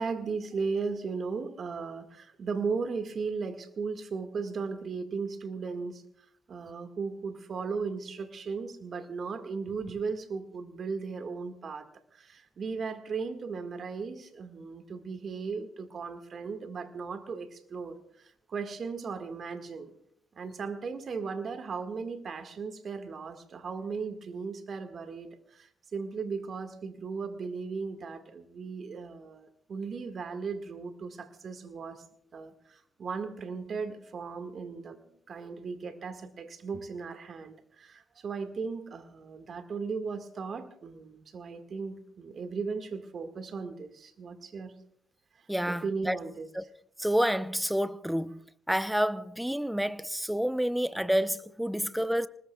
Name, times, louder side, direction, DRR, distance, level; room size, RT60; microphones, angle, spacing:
voice 1, 0.0-6.0 6.5-19.9 20.3-32.0 32.3-35.0 35.3-44.7 45.7-46.5, right 5 dB, 50° right, 1.8 m, -36 dB
voice 2, 45.5-46.2 46.5-46.6 47.0-48.4 48.7-52.3, equal, 5° right, 0.7 m, -29 dB
25.0 x 20.0 x 2.3 m
hypercardioid pair, 60°, 0 cm